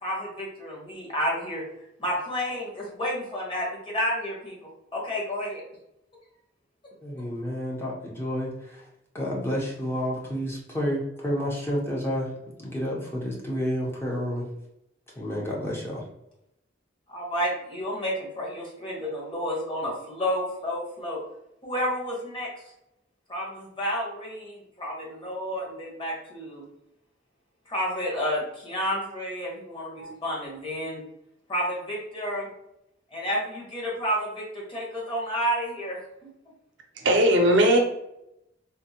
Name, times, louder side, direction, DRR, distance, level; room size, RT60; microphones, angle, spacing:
voice 1, 0.0-1.6 2.0-5.6 17.1-21.2 21.6-22.5 23.3-26.6 27.7-31.0 31.5-32.5 33.1-36.0, equal, 30° left, -4 dB, 1.1 m, -30 dB
voice 2, 7.0-8.9 9.1-12.3 12.6-14.4 15.2-16.0, equal, 15° left, -4 dB, 0.6 m, -30 dB
voice 3, 37.0-37.8, equal, 70° right, 2 dB, 0.6 m, -19 dB
3.6 x 2.0 x 2.8 m, 0.83 s
head